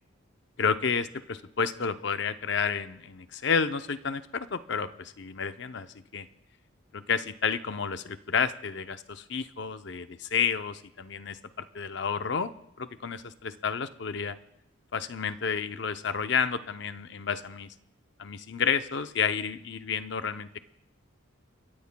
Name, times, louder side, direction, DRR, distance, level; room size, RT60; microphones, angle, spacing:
voice 1, 0.6-6.3 6.9-11.4 11.7-14.4 14.9-17.7 18.2-20.5, left 6 dB, 55° left, 10 dB, 0.6 m, -30 dB
30.0 x 15.0 x 2.2 m, 0.80 s
head